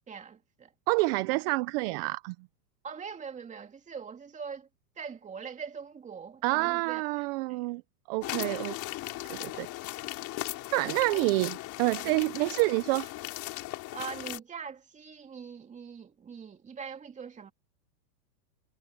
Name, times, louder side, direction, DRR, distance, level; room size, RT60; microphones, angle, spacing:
voice 1, 0.1-0.7 2.8-4.7 5.0-7.0 7.5-7.6 8.4-8.7 11.1-11.3 13.9-17.5, right 6 dB, 15° right, 2.5 m, -42 dB
voice 2, 0.9-2.4 6.4-7.8 8.1-8.7 9.3-9.7 10.7-13.1, right 23 dB, 35° right, 0.6 m, -28 dB
sound 1, 8.2-14.4, left 18 dB, 35° left, 3.7 m, -38 dB
supercardioid pair, 150°, 50 cm